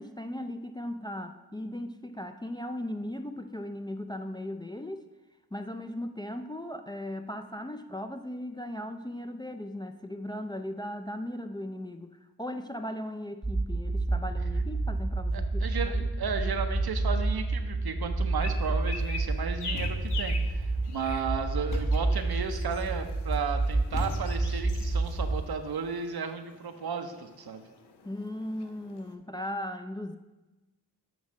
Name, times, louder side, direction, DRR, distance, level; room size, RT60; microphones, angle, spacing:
voice 1, 0.0-5.0 5.5-15.9 28.0-30.2, left 1 dB, 10° left, 6 dB, 0.3 m, -37 dB
sound 1, 13.4-25.4, right 2 dB, 15° right, 0.7 m, -29 dB
voice 2, 15.3-27.6, right 6 dB, 70° right, 7 dB, 0.7 m, -34 dB
sound 2, 18.4-29.1, left 5 dB, 90° left, 0.7 m, -45 dB
Thump thud, 19.7-20.3 21.7-22.1 23.9-24.6, left 2 dB, 55° left, 1.4 m, -37 dB
7.3 x 3.1 x 6.1 m, 1.1 s
cardioid pair, 50°, 38 cm